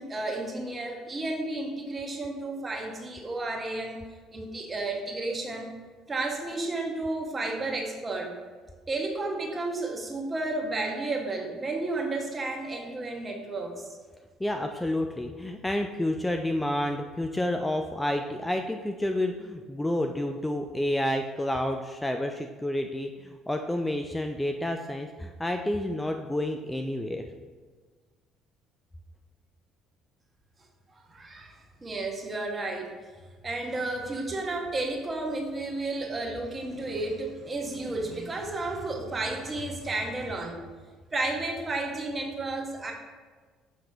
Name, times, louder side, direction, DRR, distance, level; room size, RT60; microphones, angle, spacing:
voice 1, 0.0-4.0 4.3-5.7 6.1-8.3 8.9-13.9 30.9-32.9 33.4-40.6 41.1-42.9, right 2 dB, 25° right, 1 dB, 1.2 m, -32 dB
voice 2, 14.4-27.2, left 1 dB, 10° left, 5 dB, 0.4 m, -29 dB
6.4 x 5.8 x 2.9 m, 1.4 s
hypercardioid pair, 55°, 0 cm